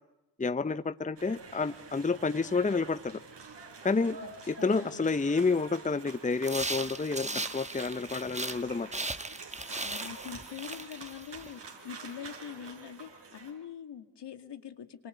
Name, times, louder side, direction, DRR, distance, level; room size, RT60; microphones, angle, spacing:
voice 1, 0.4-3.2 3.8-4.2 4.5-7.3 7.5-8.9, left 4 dB, 15° left, 14 dB, 0.9 m, -29 dB
sound 1, 1.2-13.5, right 4 dB, 70° right, 5.8 m, -47 dB
voice 2, 4.2-5.1 7.2-7.5 9.8-15.1, left 8 dB, 65° left, 8 dB, 2.2 m, -44 dB
sound 2, 6.4-8.6 8.9-11.5, right 2 dB, 15° right, 1.3 m, -37 dB
26.5 x 26.5 x 8.2 m, 1.0 s
supercardioid pair, 50°, 44 cm